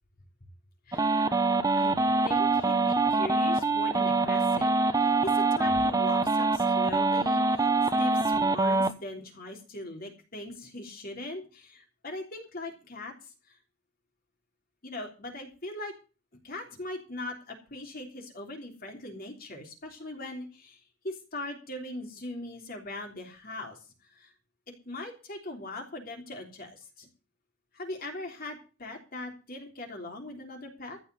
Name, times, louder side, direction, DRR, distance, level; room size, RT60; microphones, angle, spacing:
voice 1, 0.9-1.3 1.8-1.9 2.2-4.7 5.0-13.6 14.8-15.9 16.4-24.3 24.8-27.1 27.7-31.0, left 2 dB, 50° left, 2 dB, 3.3 m, -40 dB
sound 1, 0.9-8.9, right 3 dB, 20° right, 1.0 m, -24 dB
15.0 x 5.5 x 9.5 m, 0.35 s
head